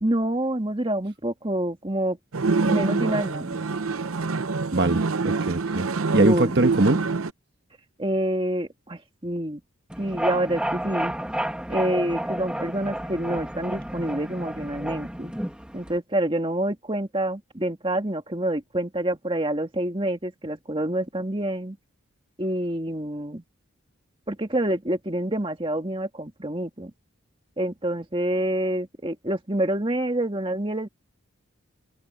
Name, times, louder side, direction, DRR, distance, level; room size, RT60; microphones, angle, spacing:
voice 1, 0.0-2.2 2.6-3.6 6.1-6.6 8.0-9.6 10.0-11.1 11.7-15.3 15.7-21.8 22.4-23.4 24.3-26.9 27.6-30.9, right 1 dB, 25° right, 2.1 m, -27 dB
sound 1, 2.3-7.3, right 4 dB, 85° right, 0.8 m, -26 dB
voice 2, 4.7-5.8 6.1-7.0, right 2 dB, 50° right, 1.3 m, -22 dB
sound 2, 9.9-16.0, right 1 dB, 5° right, 1.5 m, -31 dB
open air
head